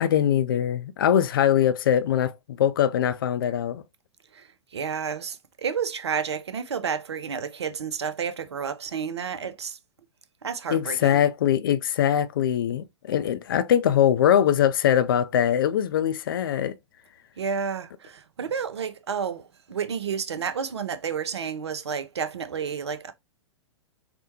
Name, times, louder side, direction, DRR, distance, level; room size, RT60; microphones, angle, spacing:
voice 1, 0.0-3.8 10.7-16.8, left 10 dB, 50° left, 0.4 m, -22 dB
voice 2, 4.7-9.8 10.4-11.2 17.4-23.1, right 6 dB, 65° right, 0.5 m, -31 dB
4.3 x 2.1 x 2.8 m
figure-of-eight pair, 110°, 15 cm